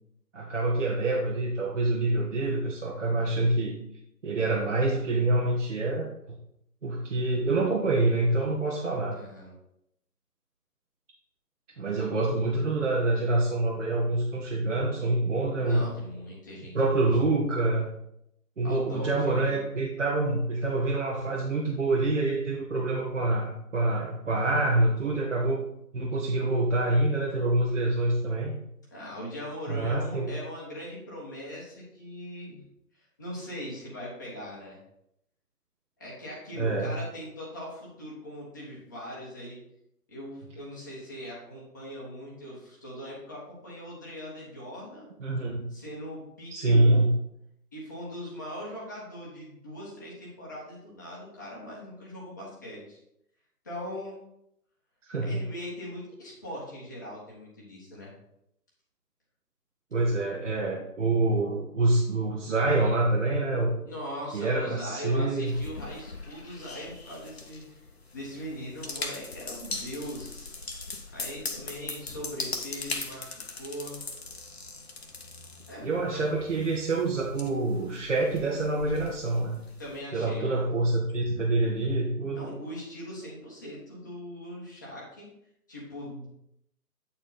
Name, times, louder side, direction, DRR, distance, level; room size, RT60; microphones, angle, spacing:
voice 1, 0.3-3.8 4.2-6.4 6.8-9.2 11.8-15.9 16.7-17.9 18.6-25.6 25.9-28.5 29.7-30.3 36.6-36.9 45.2-45.7 46.5-47.1 55.1-55.4 59.9-63.8 64.3-65.6 75.8-79.6 80.1-82.5, right 2 dB, 50° right, -3 dB, 1.2 m, -26 dB
voice 2, 9.1-9.5 15.6-16.7 18.6-19.6 28.9-32.6 32.9-34.8 36.0-39.6 40.1-45.1 45.7-47.0 47.7-53.0 53.6-54.2 55.2-58.1 63.9-67.8 68.1-70.5 71.1-74.0 75.7-76.2 79.8-80.7 82.3-85.3 85.7-86.3, equal, 10° left, -6 dB, 1.0 m, -40 dB
sound 1, 65.5-80.0, left 3 dB, 40° left, 0.8 m, -40 dB
8.6 x 4.3 x 4.1 m, 0.78 s
figure-of-eight pair, 155°, 48 cm